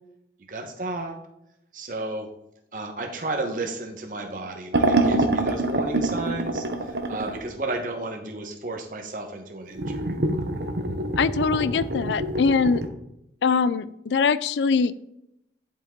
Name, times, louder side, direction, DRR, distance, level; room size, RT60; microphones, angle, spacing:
voice 1, 0.5-1.1 1.7-2.3 2.7-10.0, right 2 dB, 50° right, 3 dB, 1.0 m, -33 dB
sound 1, 4.7-7.4 9.7-12.9, right 2 dB, 75° right, 0.9 m, -25 dB
voice 2, 11.2-12.8 13.4-14.9, left 5 dB, 85° left, 16 dB, 0.4 m, -22 dB
10.5 x 5.2 x 3.7 m, 0.82 s
head